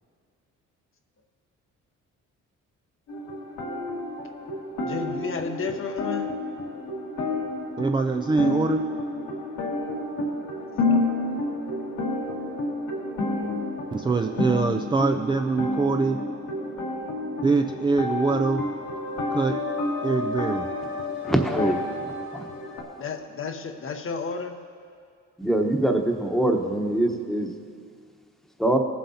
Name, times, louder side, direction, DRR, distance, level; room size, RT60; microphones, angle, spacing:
sound 1, 3.1-22.8, left 2 dB, 80° left, 1.9 m, -30 dB
voice 1, 4.8-6.3 10.7-11.0 23.0-24.6, left 4 dB, 45° left, 5 dB, 0.8 m, -32 dB
voice 2, 7.8-8.9 13.9-16.2 17.4-18.6 19.3-19.6 20.0-20.7, right 4 dB, 15° right, 5 dB, 0.3 m, -23 dB
voice 3, 21.2-21.8 22.3-22.5 25.4-27.5 28.6-28.8, right 1 dB, ahead, 3 dB, 1.0 m, -23 dB
18.0 x 7.7 x 2.8 m, 2.2 s
cardioid pair, 90°, 30 cm